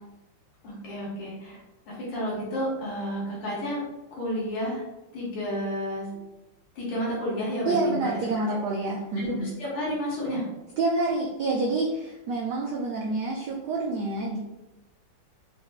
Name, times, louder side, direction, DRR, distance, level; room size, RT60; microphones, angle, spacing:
voice 1, 0.6-1.6 1.9-3.8 4.1-4.8 5.1-6.1 6.8-8.1 9.2-10.4, equal, 85° left, -6 dB, 2.0 m, -31 dB
voice 2, 7.7-9.5 10.8-14.4, right 2 dB, 85° right, -2 dB, 0.9 m, -27 dB
4.8 x 2.1 x 3.3 m, 0.98 s
omnidirectional pair, 2.3 m